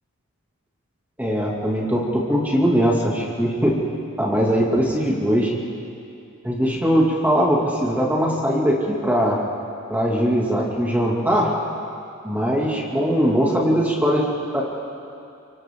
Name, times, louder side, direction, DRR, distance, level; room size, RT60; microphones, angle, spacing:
voice 1, 1.2-3.8 4.2-5.5 6.4-9.4 9.9-11.5 12.2-14.3 14.5-14.6, equal, 10° right, -3 dB, 2.6 m, -20 dB
30.0 x 25.0 x 3.9 m, 2.5 s
head